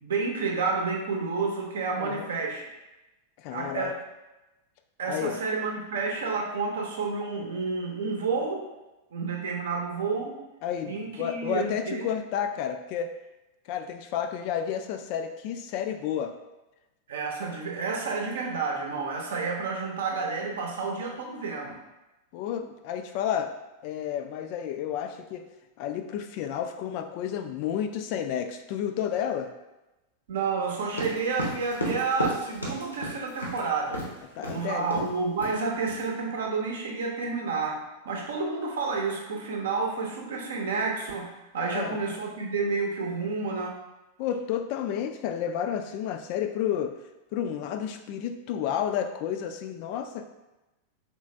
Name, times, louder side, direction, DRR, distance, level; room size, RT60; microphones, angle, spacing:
voice 1, 0.0-2.7 3.5-4.0 5.0-8.7 9.1-10.4 10.8-12.1 17.1-21.8 30.3-34.0 34.5-43.8, right 4 dB, 60° right, 0 dB, 0.7 m, -30 dB
voice 2, 2.0-2.3 3.4-3.9 5.0-5.4 10.6-13.1 13.7-16.4 22.3-23.6 23.8-25.4 25.8-29.5 34.4-35.0 41.6-42.0 44.2-47.0 47.3-50.2, left 9 dB, 45° left, 6 dB, 0.3 m, -31 dB
sound 1, 30.9-33.6 33.9-34.1 34.4-34.6 34.9-35.1 35.4-36.0, equal, 80° left, 0.7 m, -33 dB
3.2 x 3.2 x 3.2 m, 1.0 s
figure-of-eight pair, 90°, 0 cm